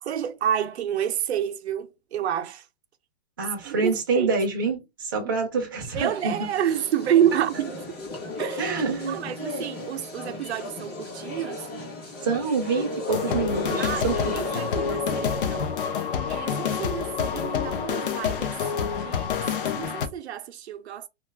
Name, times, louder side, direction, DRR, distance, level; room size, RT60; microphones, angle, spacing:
voice 1, 0.0-2.6 3.6-4.3 5.9-7.7 8.4-8.7 9.1-11.7 13.8-15.7 16.3-19.3 19.8-21.1, right 9 dB, 80° right, 0.6 m, -28 dB
voice 2, 3.4-6.5 8.6-9.2 12.2-14.6, right 4 dB, 20° right, 0.5 m, -27 dB
sound 1, 5.9-15.1, left 1 dB, 25° left, 0.7 m, -36 dB
sound 2, 13.1-20.1, left 6 dB, 55° left, 0.5 m, -27 dB
2.4 x 2.3 x 3.2 m
hypercardioid pair, 170°, 32 cm